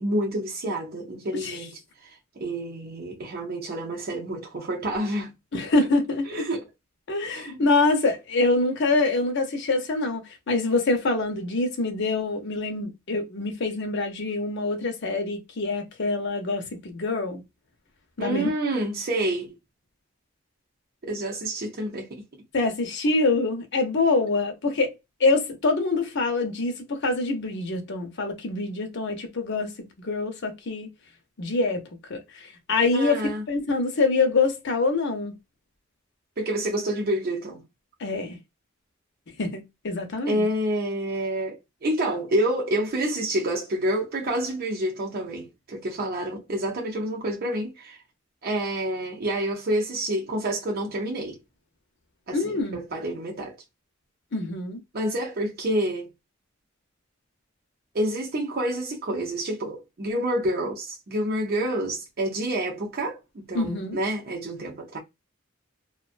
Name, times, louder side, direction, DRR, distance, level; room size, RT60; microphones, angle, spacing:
voice 1, 0.0-2.1 2.4-5.3 6.3-6.6 7.3-7.7 18.2-19.5 21.0-22.2 32.9-33.4 36.4-37.6 40.2-48.0 48.4-51.4 52.3-53.6 54.9-56.1 57.9-65.0, right 1 dB, 50° right, 0.6 m, -28 dB
voice 2, 5.5-6.5 7.1-17.4 18.2-18.5 22.5-24.9 25.2-29.7 30.0-30.9 31.4-31.8 32.1-33.2 33.5-35.3 38.0-38.4 39.4-40.5 52.3-52.8 54.3-54.8 63.5-64.0, left 3 dB, 60° left, 0.7 m, -25 dB
2.5 x 2.2 x 2.4 m
head